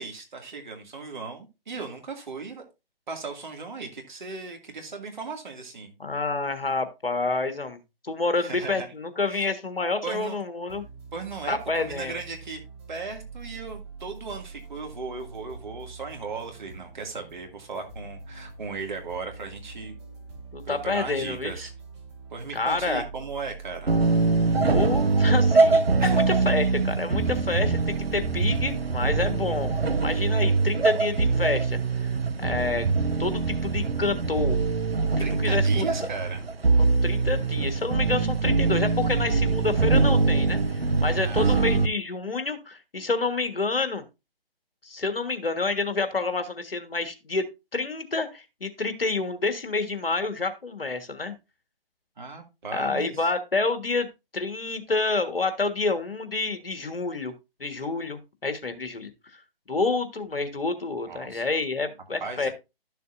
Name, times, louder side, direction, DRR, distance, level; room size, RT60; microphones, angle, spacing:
voice 1, 0.0-2.6 3.1-5.9 8.4-8.9 9.3-9.5 10.0-10.4 11.1-12.6 12.9-20.0 20.6-21.7 22.3-24.0 26.0-26.6 35.2-36.4 41.1-41.5 52.2-53.3 61.1-61.4 62.2-62.5, right 4 dB, 50° right, 3 dB, 2.4 m, -37 dB
voice 2, 6.0-7.8 8.0-10.8 11.5-12.2 20.5-21.5 22.5-23.0 24.7-29.7 30.0-31.8 32.4-32.9 33.2-34.6 35.4-35.8 36.8-40.6 41.0-44.0 44.8-47.5 47.7-51.3 52.7-54.1 54.3-57.3 57.6-59.1 59.7-62.5, left 3 dB, 70° left, 8 dB, 1.6 m, -28 dB
sound 1, 10.7-29.9, right 4 dB, 25° right, 3.3 m, -45 dB
sound 2, 23.9-41.9, right 4 dB, 80° right, 1.0 m, -23 dB
12.0 x 6.8 x 2.6 m, 0.25 s
figure-of-eight pair, 145°, 30 cm